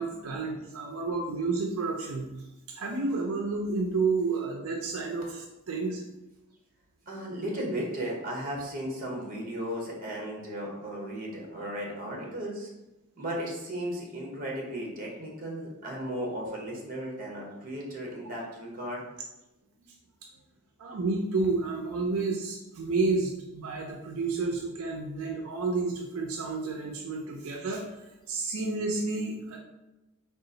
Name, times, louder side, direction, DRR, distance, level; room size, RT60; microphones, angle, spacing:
voice 1, 0.0-2.3 2.7-6.0 20.8-27.8 28.3-29.6, right 3 dB, 85° right, 0 dB, 0.5 m, -30 dB
voice 2, 7.1-12.7 13.2-19.0, equal, 45° right, -1 dB, 1.0 m, -35 dB
3.9 x 2.4 x 3.8 m, 0.99 s
head